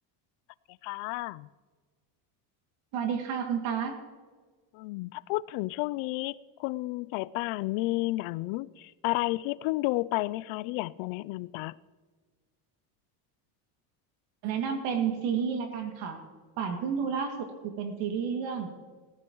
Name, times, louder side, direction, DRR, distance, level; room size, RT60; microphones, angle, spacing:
voice 1, 0.8-1.5 4.7-11.7, left 20 dB, 75° left, 0.5 m, -31 dB
voice 2, 2.9-4.0 14.4-16.2 16.6-18.7, right 7 dB, 80° right, 2.4 m, -31 dB
19.0 x 14.0 x 3.1 m
cardioid pair, 145°, 46 cm